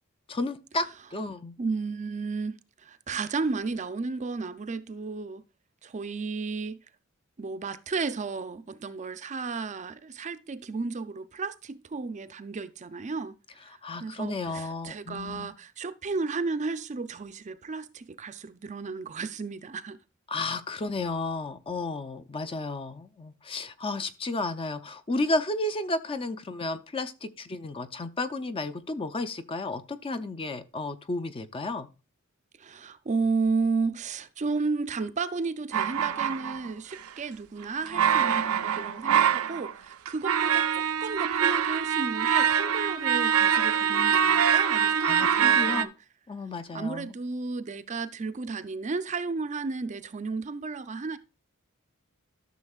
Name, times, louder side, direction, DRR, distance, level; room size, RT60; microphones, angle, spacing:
voice 1, 0.3-1.6 13.8-15.5 20.3-31.9 45.0-45.9 46.3-47.1, left 2 dB, 25° left, 0.5 m, -32 dB
voice 2, 1.6-5.4 5.8-6.8 7.4-13.3 13.6-20.0 32.6-45.9 46.7-51.2, right 4 dB, 35° right, 0.5 m, -33 dB
sound 1, 35.7-37.0 37.9-39.7 40.1-45.8, right 8 dB, 85° right, 0.5 m, -24 dB
13.0 x 6.3 x 2.4 m
head